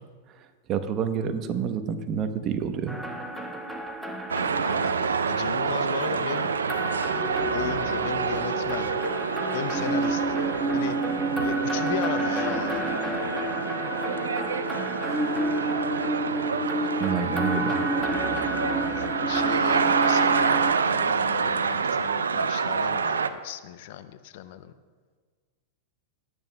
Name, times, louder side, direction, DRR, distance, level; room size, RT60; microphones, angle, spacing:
voice 1, 0.7-3.0 17.0-17.8, right 7 dB, 40° right, 8 dB, 1.0 m, -28 dB
sound 1, 2.9-20.7, right 1 dB, 5° right, 1.3 m, -30 dB
sound 2, 4.3-23.3, right 5 dB, 85° right, 0.4 m, -27 dB
voice 2, 4.6-6.5 7.3-8.9 9.5-10.4 10.7-11.0 11.4-13.0 18.8-24.7, left 11 dB, 60° left, 12 dB, 0.6 m, -36 dB
18.5 x 9.3 x 2.3 m, 1.5 s
hypercardioid pair, 105°, 0 cm